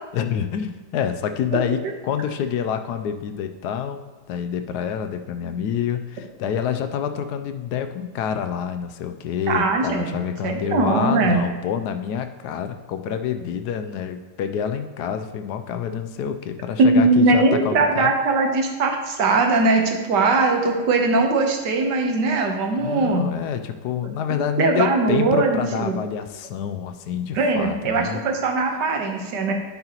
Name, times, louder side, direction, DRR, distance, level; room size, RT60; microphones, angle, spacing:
voice 1, 0.1-18.1 22.8-28.2, left 8 dB, 75° left, 8 dB, 1.1 m, -27 dB
voice 2, 9.5-11.4 16.8-23.3 24.6-26.0 27.3-29.5, right 3 dB, 70° right, 3 dB, 1.6 m, -20 dB
9.9 x 7.7 x 2.9 m, 1.2 s
omnidirectional pair, 2.0 m